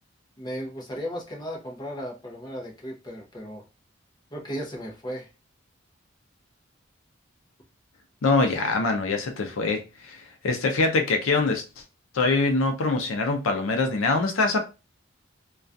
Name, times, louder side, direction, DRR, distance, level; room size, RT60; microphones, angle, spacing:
voice 1, 0.4-3.6 4.3-5.3, equal, 20° left, 0.6 m, -35 dB
voice 2, 8.2-11.6 12.1-14.7, left 3 dB, 85° left, 0.5 m, -24 dB
2.3 x 2.2 x 2.5 m
head